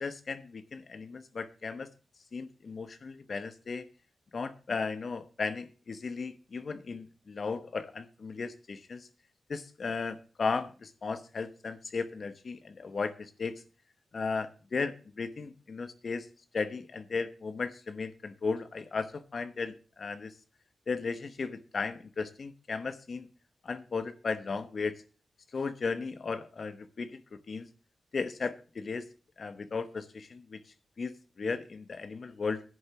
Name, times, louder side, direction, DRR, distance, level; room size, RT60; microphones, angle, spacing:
voice 1, 0.0-1.9 2.3-3.8 4.3-9.1 9.5-13.6 14.1-16.3 16.5-20.3 20.9-23.3 23.6-24.9 25.5-27.7 28.1-29.1 29.4-30.6 31.0-32.6, left 4 dB, 55° left, 11 dB, 0.9 m, -35 dB
10.5 x 6.6 x 6.8 m, 0.37 s
cardioid pair, 80°, 0 cm